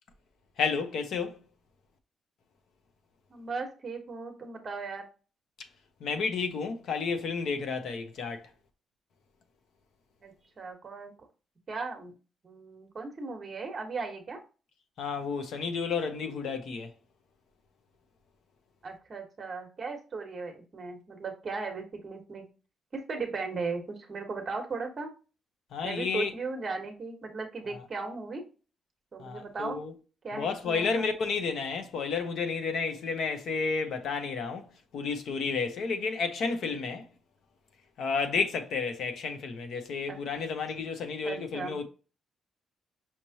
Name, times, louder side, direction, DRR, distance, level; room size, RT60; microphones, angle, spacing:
voice 1, 0.6-1.4 6.0-8.5 15.0-16.9 25.7-26.3 27.7-27.8 29.2-29.9 30.3-34.7 34.9-37.0 38.0-41.8, left 5 dB, 60° left, 0.7 m, -31 dB
voice 2, 3.3-5.1 10.2-11.1 11.7-12.1 12.4-14.4 18.8-22.5 22.9-25.1 25.8-28.4 29.1-29.8 30.2-31.1 40.1-40.2 41.2-41.8, right 4 dB, 30° right, 1.1 m, -37 dB
5.8 x 3.1 x 2.7 m
cardioid pair, 175°, 0 cm